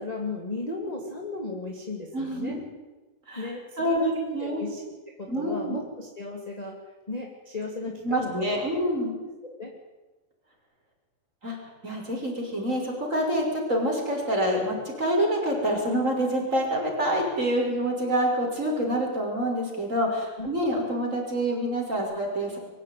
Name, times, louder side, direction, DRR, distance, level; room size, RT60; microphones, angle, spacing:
voice 1, 0.0-2.6 3.3-6.8 7.1-8.7 9.4-9.7 20.4-20.5, left 3 dB, 10° left, 0 dB, 2.3 m, -36 dB
voice 2, 2.1-2.6 3.3-4.6 5.3-5.8 8.0-9.1 11.4-11.6 11.8-22.6, equal, 20° right, 0 dB, 6.3 m, -27 dB
24.5 x 16.0 x 9.5 m, 1.2 s
omnidirectional pair, 4.2 m